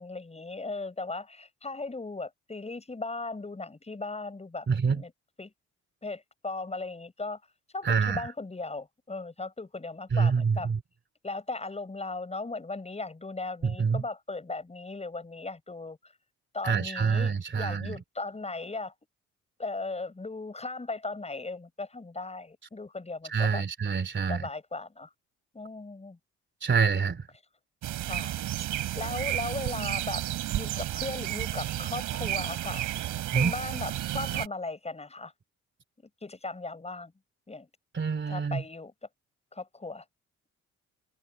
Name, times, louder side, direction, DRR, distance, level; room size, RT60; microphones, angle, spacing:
voice 1, 0.0-5.1 5.4-5.5 6.0-7.4 7.7-10.7 11.2-16.1 16.5-18.9 19.6-23.6 24.3-25.1 25.5-26.2 28.0-28.3 28.9-30.3 30.5-32.9 33.3-35.3 36.0-37.1 37.5-37.7 38.3-38.9 39.5-40.0, left 3 dB, 20° left, 7.7 m, -37 dB
voice 2, 4.7-5.0 7.8-8.3 10.1-10.8 13.6-14.0 16.6-18.0 23.3-24.4 26.6-27.3 33.3-33.5 37.9-38.6, right 5 dB, 40° right, 3.3 m, -26 dB
sound 1, 27.8-34.5, right 14 dB, 85° right, 3.7 m, -32 dB
cardioid pair, 90°, 30 cm